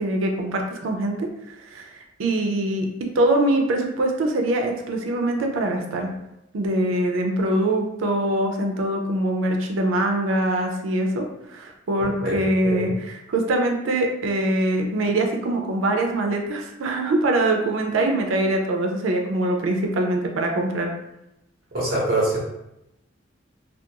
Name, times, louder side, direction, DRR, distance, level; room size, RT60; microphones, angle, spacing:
voice 1, 0.0-6.1 6.5-20.9, right 1 dB, 85° right, 3 dB, 0.4 m, -23 dB
voice 2, 12.2-12.9 21.7-22.4, right 1 dB, 50° right, -4 dB, 0.9 m, -24 dB
2.4 x 2.2 x 2.8 m, 0.87 s
head